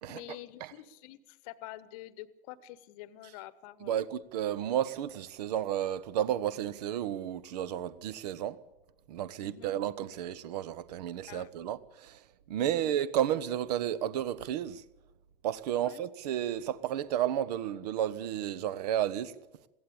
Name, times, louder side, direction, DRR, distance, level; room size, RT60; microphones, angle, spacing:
voice 1, 0.1-4.0 9.3-9.7 11.3-11.5 12.5-12.9 15.7-16.1, left 15 dB, 35° left, 1.1 m, -47 dB
voice 2, 3.8-8.6 9.1-12.2 12.5-14.8 15.4-19.4, right 11 dB, 45° right, 1.0 m, -32 dB
21.5 x 16.0 x 8.6 m
figure-of-eight pair, 110°, 29 cm